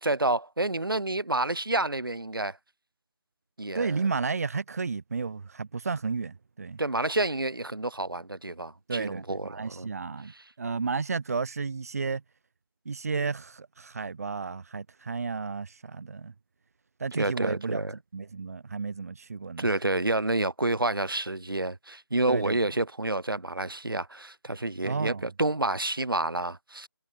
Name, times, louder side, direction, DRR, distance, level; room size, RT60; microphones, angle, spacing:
voice 1, 0.0-2.6 3.6-4.0 6.8-9.9 17.1-17.9 19.6-26.9, right 2 dB, 70° right, 2.3 m, -29 dB
voice 2, 3.7-6.8 8.9-12.2 12.9-16.3 17.0-17.8 18.1-19.7 22.3-22.6 24.8-25.3, right 4 dB, 40° right, 1.7 m, -32 dB
figure-of-eight pair, 155°, 12 cm